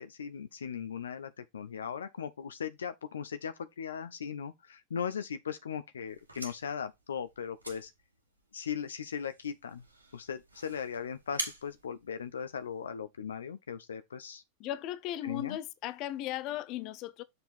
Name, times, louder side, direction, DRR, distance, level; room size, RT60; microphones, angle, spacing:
voice 1, 0.0-7.9 8.5-9.8 10.1-14.4 15.2-15.6, left 7 dB, 70° left, 0.6 m, -38 dB
sound 1, 6.0-12.9, right 2 dB, 85° right, 2.1 m, -45 dB
voice 2, 14.6-17.2, left 13 dB, 40° left, 0.8 m, -37 dB
6.7 x 5.3 x 4.3 m
figure-of-eight pair, 90°, 0 cm